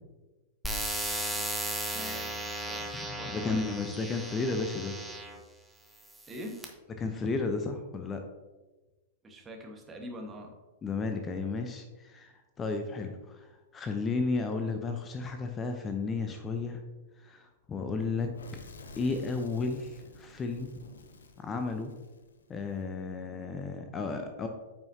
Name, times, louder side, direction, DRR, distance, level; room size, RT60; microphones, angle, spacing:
sound 1, 0.6-5.4 6.1-6.6, right 1 dB, ahead, 1.1 m, -36 dB
voice 1, 1.9-2.8 3.2-3.7 6.3-6.6 9.2-10.5, equal, 20° right, 2 dB, 1.4 m, -43 dB
voice 2, 3.1-5.0 7.0-8.2 10.8-13.5 13.7-16.8 17.2-17.4 17.7-18.3 19.0-20.7 21.4-21.9 22.5-24.5, left 4 dB, 20° left, 5 dB, 0.7 m, -33 dB
Fire / Explosion, 18.0-22.8, left 3 dB, 75° left, 0.7 m, -51 dB
8.8 x 5.6 x 2.8 m, 1.2 s
figure-of-eight pair, 100°, 0 cm